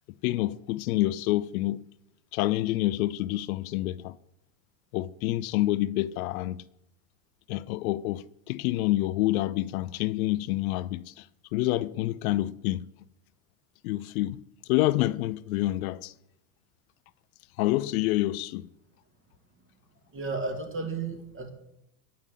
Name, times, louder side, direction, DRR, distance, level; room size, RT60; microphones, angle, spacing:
voice 1, 0.2-1.8 2.3-4.2 4.9-6.6 7.5-11.3 11.5-12.9 13.8-14.4 14.7-16.1 17.6-18.7, left 16 dB, 75° left, 0.5 m, -27 dB
voice 2, 20.1-21.5, right 3 dB, 30° right, 2.2 m, -33 dB
9.8 x 5.5 x 8.3 m
supercardioid pair, 110°, 43 cm